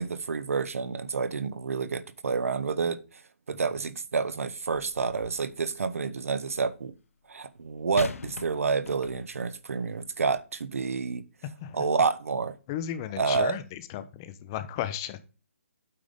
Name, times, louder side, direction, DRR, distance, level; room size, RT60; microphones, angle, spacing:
voice 1, 0.0-3.0 3.5-6.9 7.3-11.2 11.7-12.6 13.2-13.6, right 5 dB, 80° right, 0.8 m, -29 dB
sound 1, 4.7-5.5 8.0-9.5 10.3-10.4, left 5 dB, 75° left, 0.8 m, -40 dB
voice 2, 12.7-15.2, left 11 dB, 15° left, 0.4 m, -34 dB
8.6 x 3.9 x 5.0 m
hypercardioid pair, 170°, 8 cm